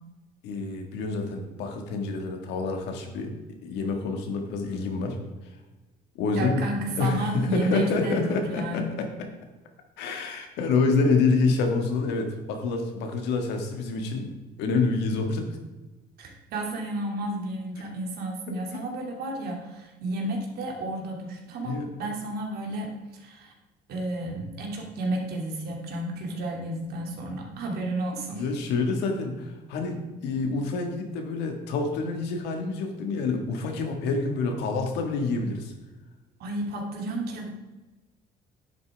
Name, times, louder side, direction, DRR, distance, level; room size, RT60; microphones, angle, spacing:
voice 1, 0.4-3.3 3.6-5.2 6.2-6.6 7.0-9.1 10.0-15.6 18.5-18.8 21.6-21.9 28.3-35.7, left 4 dB, 90° left, 4 dB, 1.7 m, -27 dB
voice 2, 6.3-9.0 16.2-23.5 23.9-28.4 36.4-37.5, right 1 dB, 70° right, 0 dB, 2.5 m, -32 dB
10.5 x 8.5 x 3.5 m, 1.1 s
cardioid pair, 110°, 17 cm